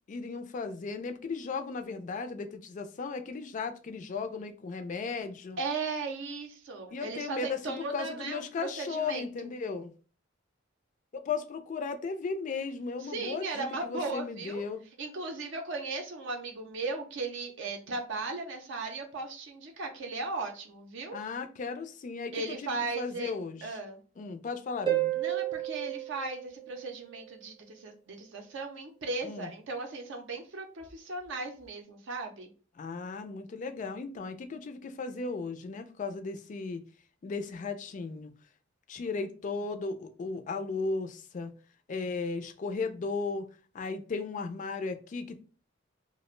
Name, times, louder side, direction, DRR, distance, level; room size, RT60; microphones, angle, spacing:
voice 1, 0.0-5.6 6.9-9.9 11.1-14.8 21.1-23.8 24.2-25.1 29.2-29.5 32.8-36.8 37.2-38.3 38.9-41.5 41.9-43.5 43.7-45.4, left 4 dB, 40° left, 7 dB, 0.3 m, -36 dB
voice 2, 5.6-9.3 13.0-14.6 15.0-21.2 22.3-23.3 23.6-24.0 25.1-32.5, right 3 dB, 65° right, 3 dB, 0.5 m, -37 dB
Harp, 24.9-27.4 30.9-31.0, right 14 dB, 25° right, 0.6 m, -32 dB
2.4 x 2.0 x 3.0 m, 0.38 s
head